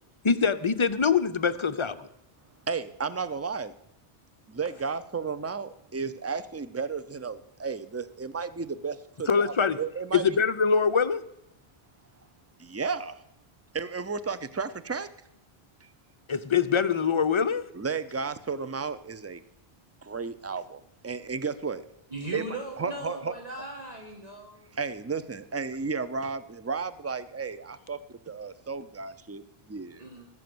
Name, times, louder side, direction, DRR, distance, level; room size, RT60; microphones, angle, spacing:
voice 1, 0.2-2.1 9.3-9.8 10.1-11.2 16.3-17.6, left 6 dB, 35° left, 11 dB, 0.6 m, -24 dB
voice 2, 2.7-3.7 4.5-10.4 12.6-13.2 13.7-15.1 17.7-19.4 20.0-21.8 22.3-22.5 22.8-23.3 24.7-30.0, right 5 dB, 20° right, 14 dB, 0.5 m, -33 dB
voice 3, 22.1-24.8 30.0-30.3, right 1 dB, 40° right, 0 dB, 1.7 m, -39 dB
19.0 x 7.7 x 7.8 m, 0.83 s
omnidirectional pair, 1.1 m